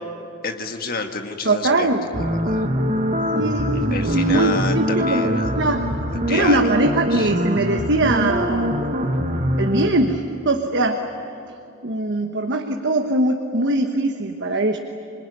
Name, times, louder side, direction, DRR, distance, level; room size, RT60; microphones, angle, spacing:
voice 1, 0.4-2.6 3.7-5.6 6.3-7.3, left 4 dB, 40° left, 5 dB, 1.7 m, -29 dB
voice 2, 1.4-2.0 3.3-5.8 6.3-9.1 9.6-11.0 11.8-14.8, right 2 dB, 50° right, 4 dB, 1.3 m, -21 dB
sound 1, 2.1-9.9, equal, 35° right, 1.4 m, -23 dB
26.5 x 21.0 x 9.9 m, 2.7 s
head